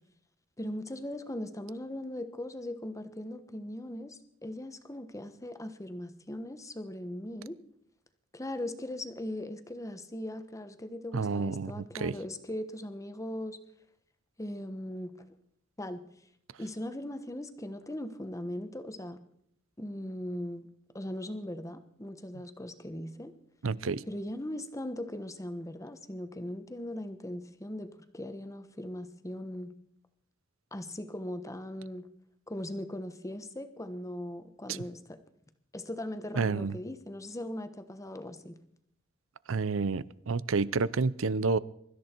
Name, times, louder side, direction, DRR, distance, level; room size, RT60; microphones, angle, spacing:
voice 1, 0.6-7.6 8.3-13.6 14.4-15.3 15.8-16.0 16.6-19.2 19.8-20.7 20.9-23.3 24.1-29.7 30.7-32.1 32.5-35.2 35.7-38.6, left 1 dB, 15° left, 10 dB, 1.2 m, -39 dB
voice 2, 11.1-12.2 23.6-24.0 36.4-36.7 39.5-41.6, right 4 dB, 75° right, 19 dB, 0.6 m, -29 dB
23.5 x 13.5 x 4.5 m, 0.71 s
head